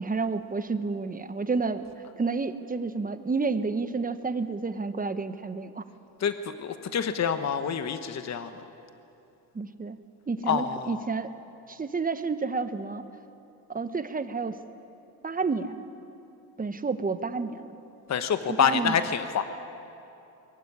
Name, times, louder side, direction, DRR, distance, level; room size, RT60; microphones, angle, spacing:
voice 1, 0.0-1.8 2.2-5.8 9.5-10.0 10.3-11.3 11.7-13.1 13.7-14.6 15.2-15.8 16.6-17.7 18.6-18.9, right 4 dB, 20° right, 10 dB, 1.1 m, -30 dB
voice 2, 6.2-8.6 10.5-11.0 18.1-19.4, left 7 dB, 35° left, 9 dB, 1.2 m, -27 dB
22.0 x 15.5 x 9.8 m, 2.8 s
supercardioid pair, 90°, 46 cm